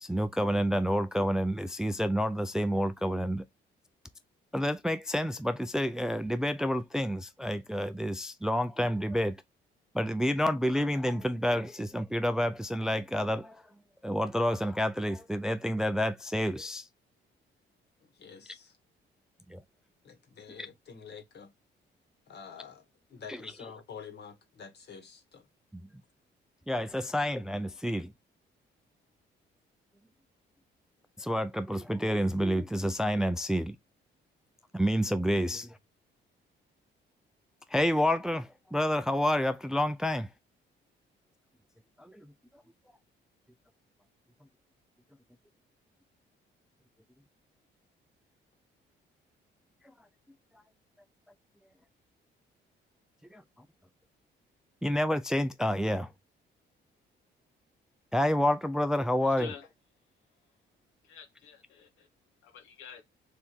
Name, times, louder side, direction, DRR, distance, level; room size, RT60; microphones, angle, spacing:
voice 1, 0.0-3.4 4.5-9.4 9.9-13.6 14.0-16.9 19.5-19.6 26.7-28.1 31.2-33.8 34.7-35.7 37.7-40.3 42.0-42.3 53.3-53.4 54.8-56.1 58.1-59.5, equal, 5° right, 0.3 m, -29 dB
voice 2, 18.0-18.8 20.0-21.5 22.3-25.5, left 6 dB, 60° left, 1.6 m, -48 dB
voice 3, 59.2-59.7 61.0-62.1 62.4-63.0, left 7 dB, 80° left, 1.1 m, -47 dB
3.5 x 2.7 x 4.4 m
cardioid pair, 90°, 20 cm